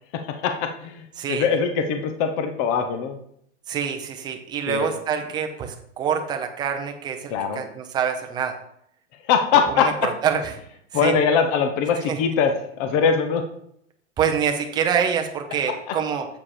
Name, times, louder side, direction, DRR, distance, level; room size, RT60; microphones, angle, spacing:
voice 1, 0.1-3.2 4.7-4.9 7.3-7.6 9.2-9.9 10.9-13.4 15.9-16.0, left 6 dB, 30° left, 6 dB, 0.7 m, -22 dB
voice 2, 1.2-1.5 3.7-8.5 9.7-10.5 11.0-11.2 12.1-12.2 14.2-16.3, right 7 dB, 10° right, 4 dB, 0.6 m, -26 dB
7.4 x 4.8 x 4.9 m, 0.69 s
supercardioid pair, 155°, 35 cm